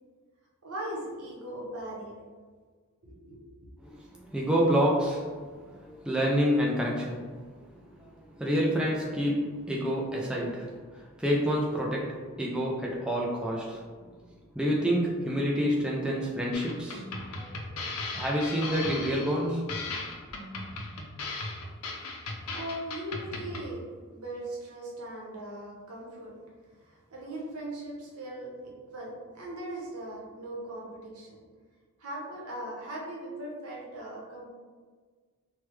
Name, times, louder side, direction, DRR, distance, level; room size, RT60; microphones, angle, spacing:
voice 1, 0.6-2.2 3.0-3.4 22.2-26.4 26.7-31.4 32.0-34.5, right 1 dB, 85° right, -3 dB, 0.9 m, -39 dB
voice 2, 3.8-5.3 5.7-7.2 7.7-13.8 14.5-17.0 17.4-17.8 18.1-19.6, equal, 5° right, -3 dB, 0.3 m, -28 dB
sound 1, 16.5-23.7, left 3 dB, 85° left, 0.5 m, -37 dB
3.2 x 2.2 x 3.0 m, 1.5 s
head